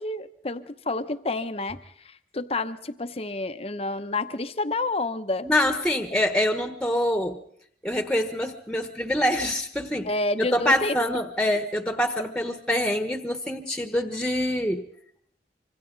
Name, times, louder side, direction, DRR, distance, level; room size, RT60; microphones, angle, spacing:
voice 1, 0.0-5.5 10.0-11.0, left 2 dB, 35° left, 9 dB, 0.9 m, -29 dB
voice 2, 5.4-7.4 7.8-10.1 10.5-14.8, left 1 dB, 5° left, 6 dB, 1.3 m, -25 dB
26.0 x 25.0 x 4.0 m, 0.65 s
head